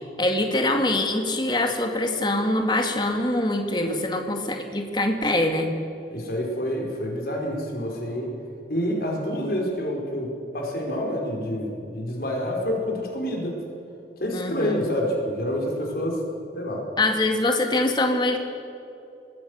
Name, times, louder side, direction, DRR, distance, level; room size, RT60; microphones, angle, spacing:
voice 1, 0.2-5.7 14.3-14.9 17.0-18.4, left 2 dB, 25° left, 3 dB, 2.3 m, -24 dB
voice 2, 6.1-8.3 8.7-13.6 14.2-16.2 16.5-16.9, equal, 55° left, 0 dB, 5.2 m, -28 dB
25.0 x 19.5 x 6.7 m, 2.8 s
head